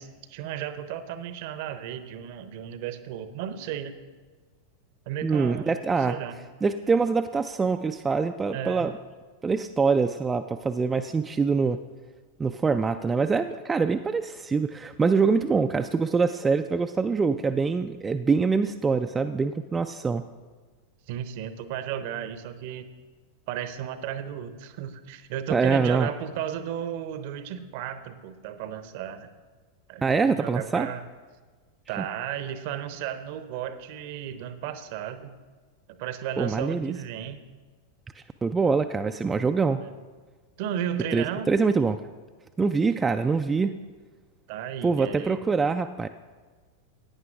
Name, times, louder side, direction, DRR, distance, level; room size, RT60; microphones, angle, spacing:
voice 1, 0.0-3.9 5.1-5.8 6.1-6.4 8.5-8.9 21.1-22.9 23.5-29.3 29.9-31.0 31.9-35.3 35.9-37.4 39.6-39.9 40.6-41.5 44.5-45.4, right 10 dB, 50° right, 11 dB, 0.7 m, -34 dB
voice 2, 5.2-6.2 6.6-8.9 9.4-11.8 12.4-20.2 25.5-26.1 30.0-30.9 36.4-36.9 38.4-39.8 41.1-42.0 42.6-43.8 44.8-46.1, right 4 dB, 15° right, 7 dB, 0.3 m, -24 dB
16.5 x 9.4 x 2.5 m, 1.4 s
figure-of-eight pair, 90°, 0 cm